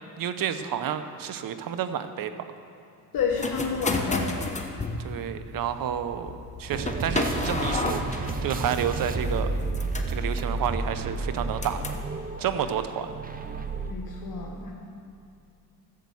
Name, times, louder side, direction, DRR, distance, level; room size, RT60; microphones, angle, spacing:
voice 1, 0.2-2.3 5.0-8.0 8.4-9.5 10.1-11.8 12.4-13.1, right 9 dB, 55° right, 10 dB, 0.9 m, -30 dB
voice 2, 3.1-4.3 13.9-14.7, left 5 dB, 55° left, -1 dB, 1.5 m, -29 dB
sound 1, 3.2-12.1, left 3 dB, 15° left, 1.2 m, -33 dB
sound 2, 6.7-13.9, right 3 dB, 20° right, 0.8 m, -31 dB
12.0 x 7.6 x 7.1 m, 2.6 s
cardioid pair, 90°, 40 cm